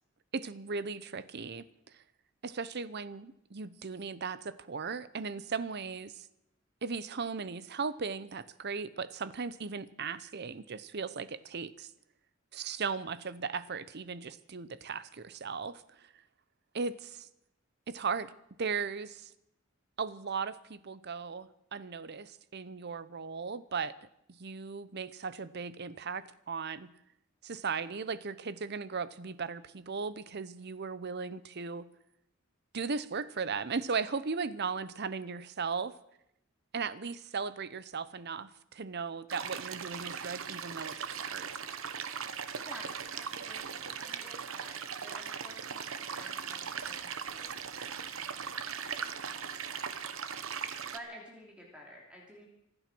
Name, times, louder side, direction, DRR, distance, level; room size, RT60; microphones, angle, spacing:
voice 1, 0.3-1.7 2.4-6.3 6.8-11.9 12.5-15.8 16.7-17.3 17.9-18.3 18.6-19.3 20.0-23.9 24.3-26.9 27.4-31.9 32.7-35.9 36.7-41.6, right 5 dB, 55° right, 16 dB, 0.8 m, -37 dB
sound 1, 39.3-51.0, right 7 dB, 80° right, 1.1 m, -39 dB
voice 2, 42.2-47.7 48.0-52.5, equal, 5° right, -2 dB, 3.0 m, -53 dB
25.5 x 8.9 x 6.2 m, 0.80 s
head